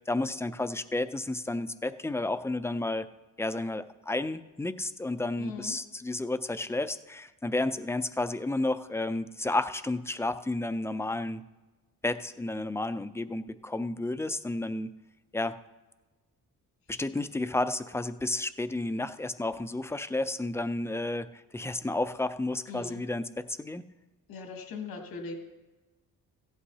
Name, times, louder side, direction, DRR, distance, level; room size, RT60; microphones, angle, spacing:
voice 1, 0.1-3.1 3.4-11.4 12.0-14.9 15.3-15.6 16.9-23.8, left 2 dB, 10° left, 11 dB, 0.3 m, -31 dB
voice 2, 5.4-5.7 22.7-23.0 24.3-25.3, left 4 dB, 90° left, 2 dB, 2.2 m, -39 dB
16.0 x 11.0 x 2.8 m, 1.1 s
cardioid pair, 125°, 36 cm